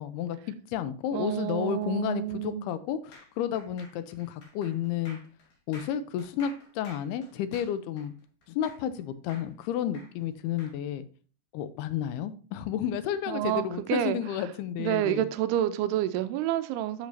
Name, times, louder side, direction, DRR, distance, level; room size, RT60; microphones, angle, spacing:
voice 1, 0.0-5.2 5.7-8.1 8.5-11.0 11.5-15.2, left 9 dB, 85° left, 12 dB, 2.6 m, -32 dB
voice 2, 1.1-2.7 13.3-14.5 14.8-17.1, right 12 dB, 90° right, 10 dB, 2.6 m, -29 dB
sound 1, 3.1-9.0 9.3-10.8, left 1 dB, 60° left, 4.6 m, -51 dB
11.5 x 6.5 x 2.7 m, 0.39 s
omnidirectional pair, 4.6 m